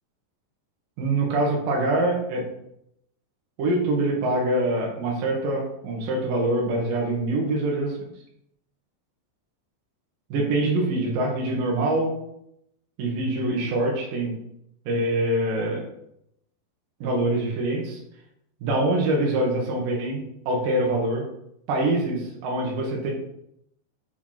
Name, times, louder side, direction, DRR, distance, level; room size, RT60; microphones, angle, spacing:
voice 1, 1.0-2.4 3.6-8.0 10.3-12.1 13.0-14.3 14.9-15.8 17.0-18.0 18.6-21.2 21.7-23.1, right 2 dB, 60° right, -2 dB, 2.9 m, -24 dB
7.5 x 5.8 x 4.4 m, 0.77 s
omnidirectional pair, 5.3 m